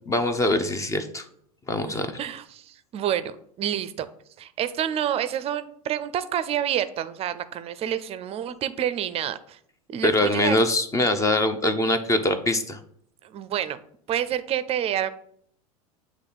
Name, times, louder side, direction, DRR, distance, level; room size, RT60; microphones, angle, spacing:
voice 1, 0.1-1.2 1.7-2.1 10.0-12.8, left 1 dB, 15° left, 10 dB, 0.6 m, -23 dB
voice 2, 1.9-4.1 4.4-9.6 9.9-10.6 13.2-13.8 14.1-15.1, right 10 dB, 35° right, 13 dB, 0.5 m, -28 dB
8.1 x 3.1 x 4.1 m, 0.66 s
hypercardioid pair, 95°, 19 cm